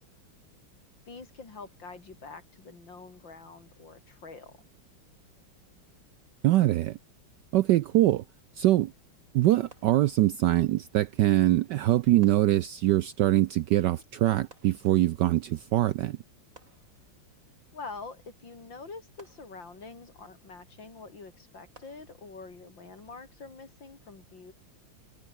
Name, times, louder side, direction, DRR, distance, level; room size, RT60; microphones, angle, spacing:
voice 1, 1.1-4.5 17.7-24.5, left 4 dB, 60° left, 4.6 m, -45 dB
voice 2, 6.4-7.0 7.5-8.2 8.6-8.9 9.3-16.2, right 15 dB, 70° right, 1.0 m, -23 dB
sound 1, 9.7-10.6 12.2-13.1 14.5-15.4 16.5-17.5 19.2-20.1 21.7-22.6, right 2 dB, 35° right, 5.4 m, -59 dB
omnidirectional pair, 2.3 m